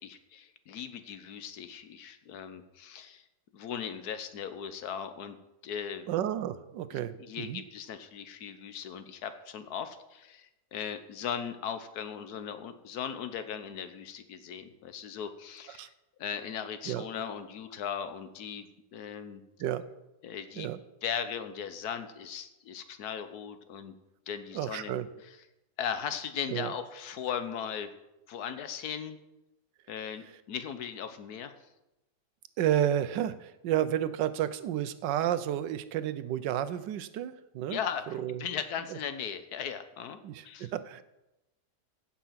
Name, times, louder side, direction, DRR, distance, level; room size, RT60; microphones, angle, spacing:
voice 1, 0.0-3.2 3.5-5.4 5.6-6.1 7.2-15.9 16.2-19.4 20.2-20.7 21.0-23.9 24.3-24.9 25.8-27.9 28.3-29.2 29.9-31.5 37.7-40.2 40.4-40.7, left 8 dB, 65° left, 10 dB, 1.3 m, -38 dB
voice 2, 6.1-7.6 15.7-15.9 16.8-17.0 19.6-19.8 20.6-20.8 24.5-25.1 26.5-26.7 30.2-30.3 32.6-37.8 38.1-38.4 38.9-39.0 40.2-41.0, right 11 dB, 85° right, 13 dB, 1.3 m, -31 dB
15.5 x 5.8 x 5.7 m, 0.94 s
omnidirectional pair, 1.9 m